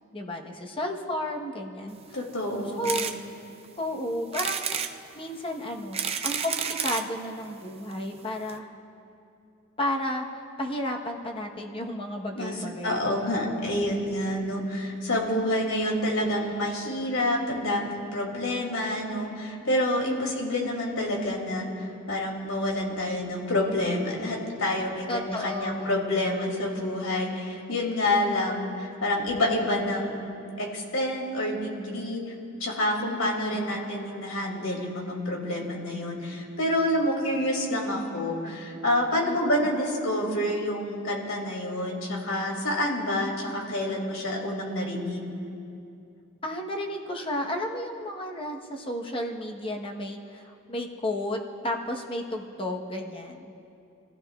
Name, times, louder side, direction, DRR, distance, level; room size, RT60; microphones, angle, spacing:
voice 1, 0.1-2.2 2.8-3.1 3.8-4.6 5.1-8.7 9.8-13.4 20.1-20.3 25.1-26.0 33.1-33.3 33.7-33.8 39.3-39.4 46.4-53.5, left 1 dB, 25° left, 1 dB, 1.2 m, -32 dB
voice 2, 2.1-2.8 12.3-12.5 12.8-21.7 22.1-30.3 30.6-32.2 32.6-45.3, left 1 dB, 90° left, 0 dB, 2.8 m, -28 dB
sound 1, 2.8-3.2 3.6-3.7 4.3-4.9 5.7-7.1 7.9-8.0 8.2-8.3 8.5-8.6, right 7 dB, 30° right, 0.5 m, -30 dB
28.5 x 15.0 x 2.5 m, 2.6 s
head